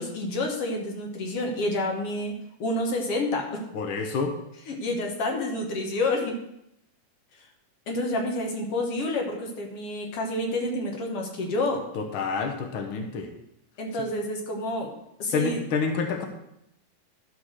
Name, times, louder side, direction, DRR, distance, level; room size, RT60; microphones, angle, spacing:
voice 1, 0.0-2.3 2.6-3.6 4.7-6.3 7.9-11.8 13.8-14.9 15.2-15.6, left 2 dB, 50° left, 1 dB, 2.1 m, -29 dB
voice 2, 3.7-4.3 11.9-13.3 15.3-16.2, left 5 dB, 85° left, 4 dB, 1.1 m, -28 dB
12.0 x 4.7 x 6.4 m, 0.80 s
omnidirectional pair, 3.9 m